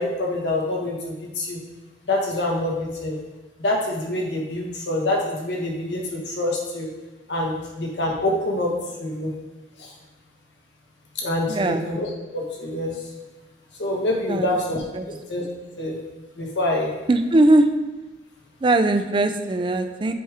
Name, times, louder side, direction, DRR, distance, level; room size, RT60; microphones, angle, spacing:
voice 1, 0.0-1.6 2.1-3.2 3.6-6.9 7.3-8.7 9.0-9.3 9.8-9.9 11.1-11.6 11.9-12.1 12.3-13.0 13.8-14.8 15.1-15.4 15.8-16.0 16.4-16.9, left 1 dB, 80° left, -1 dB, 1.4 m, -26 dB
voice 2, 11.5-11.9 14.3-14.5 14.9-15.1 17.1-17.7 18.6-20.1, right 2 dB, 30° right, 8 dB, 0.4 m, -19 dB
7.0 x 3.4 x 4.9 m, 1.2 s
head